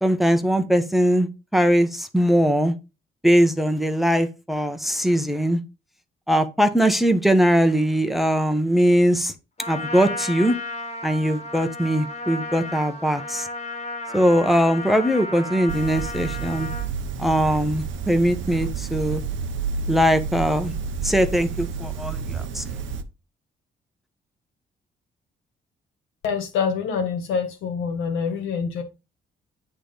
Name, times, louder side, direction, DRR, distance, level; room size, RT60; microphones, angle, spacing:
voice 1, 0.0-2.7 3.2-5.6 6.3-9.3 9.7-10.6 11.0-13.5 14.1-16.7 17.2-19.2 19.9-20.7 21.0-22.6, equal, ahead, 1.0 m, -21 dB
Trumpet, 9.6-16.9, left 2 dB, 35° left, 2.0 m, -33 dB
sound 1, 15.7-23.0, right 5 dB, 75° right, 0.9 m, -30 dB
voice 2, 26.2-28.8, left 6 dB, 85° left, 1.5 m, -26 dB
8.5 x 3.2 x 5.3 m
cardioid pair, 90°, 20 cm